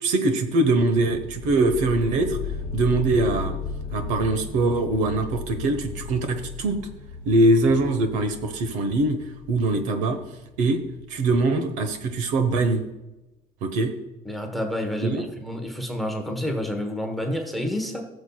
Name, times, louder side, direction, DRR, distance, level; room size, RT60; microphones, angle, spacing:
voice 1, 0.0-2.4 2.7-3.6 3.9-6.8 7.3-9.2 9.5-10.2 10.6-10.8 11.1-12.8 13.6-13.9 15.0-15.3, right 2 dB, 65° right, 9 dB, 1.0 m, -22 dB
sound 1, 1.0-12.4, left 5 dB, 30° left, 1.8 m, -36 dB
voice 2, 14.2-18.0, left 1 dB, ahead, 3 dB, 1.0 m, -29 dB
17.5 x 6.9 x 2.3 m, 1.0 s
cardioid pair, 170°, 14 cm